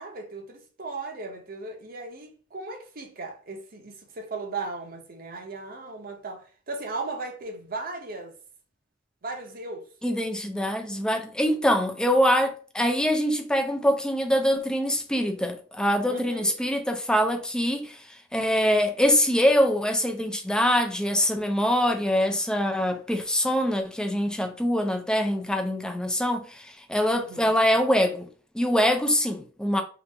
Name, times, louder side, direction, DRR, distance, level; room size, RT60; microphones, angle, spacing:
voice 1, 0.0-8.3 9.2-9.8 16.1-16.5 27.1-27.5, right 3 dB, 50° right, 0.7 m, -37 dB
voice 2, 10.0-18.0 18.3-28.3 28.5-29.8, equal, 5° left, 0.4 m, -24 dB
2.9 x 2.5 x 3.3 m
head